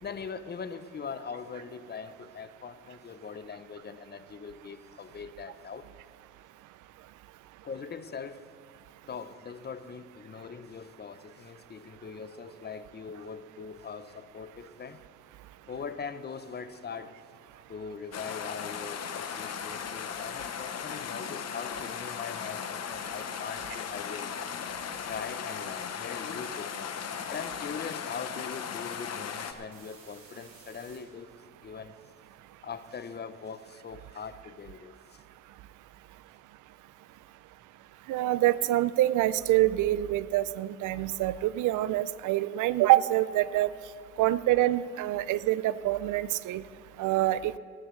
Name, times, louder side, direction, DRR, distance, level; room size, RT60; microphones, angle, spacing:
voice 1, 0.0-5.9 7.6-8.5 9.1-15.0 15.7-17.1 17.7-24.4 25.1-26.9 27.3-31.3 31.6-31.9 32.6-35.2, left 6 dB, 35° left, 12 dB, 0.6 m, -41 dB
sound 1, 18.1-29.5, left 7 dB, 55° left, 1.0 m, -37 dB
sound 2, 29.7-31.0 39.3-39.4 39.8-41.5, right 4 dB, 60° right, 3.7 m, -56 dB
voice 2, 38.1-43.7 44.2-46.6 47.0-47.5, right 15 dB, 80° right, 17 dB, 0.5 m, -26 dB
18.5 x 12.5 x 3.2 m, 2.3 s
cardioid pair, 90°, 30 cm